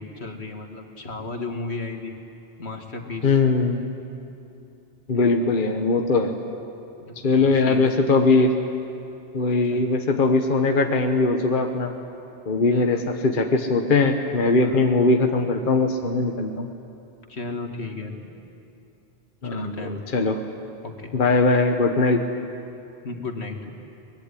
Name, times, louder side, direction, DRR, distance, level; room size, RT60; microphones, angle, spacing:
voice 1, 0.0-2.1 2.6-3.4 5.1-5.5 7.0-7.8 9.7-9.8 12.7-13.1 14.6-14.9 17.3-18.1 19.4-20.0 20.8-21.1 23.0-23.6, left 3 dB, 80° left, 3 dB, 2.4 m, -34 dB
voice 2, 3.2-3.8 5.1-6.4 7.2-8.5 9.3-11.9 12.5-16.7 19.4-20.4 21.1-22.2, left 3 dB, 50° left, 4 dB, 1.3 m, -20 dB
23.5 x 21.0 x 9.9 m, 2.8 s
omnidirectional pair, 1.1 m